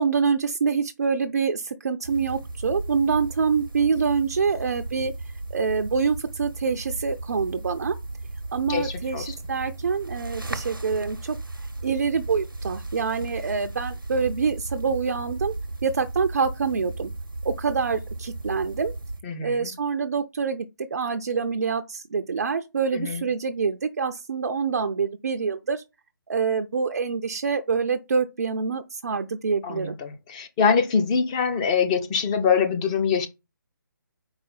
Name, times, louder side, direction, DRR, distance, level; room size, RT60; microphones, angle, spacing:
voice 1, 0.0-5.1 5.5-8.0 8.5-11.4 11.8-15.5 15.8-17.1 17.4-18.9 19.4-20.7 20.9-25.8 26.3-30.0, right 5 dB, 50° right, 0.5 m, -26 dB
sound 1, 2.0-19.2, right 2 dB, 85° right, 0.8 m, -35 dB
voice 2, 8.7-9.4 19.2-19.7 22.9-23.3 29.6-33.3, left 6 dB, 20° left, 0.6 m, -24 dB
4.8 x 4.1 x 5.4 m
figure-of-eight pair, 145°, 11 cm